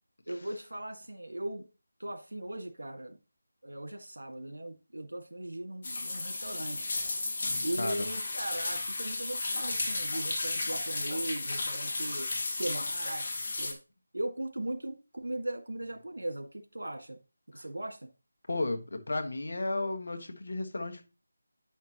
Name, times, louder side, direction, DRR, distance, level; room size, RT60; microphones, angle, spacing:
voice 1, 0.3-1.6 2.0-3.2 3.6-6.9 7.6-12.3 12.6-13.8 14.1-17.2 17.5-18.1, right 1 dB, 85° right, 1.9 m, -38 dB
sound 1, 5.8-13.7, left 2 dB, 40° left, 1.9 m, -34 dB
voice 2, 18.5-21.0, left 2 dB, 65° left, 1.5 m, -33 dB
10.0 x 5.9 x 3.0 m
figure-of-eight pair, 165°, 0 cm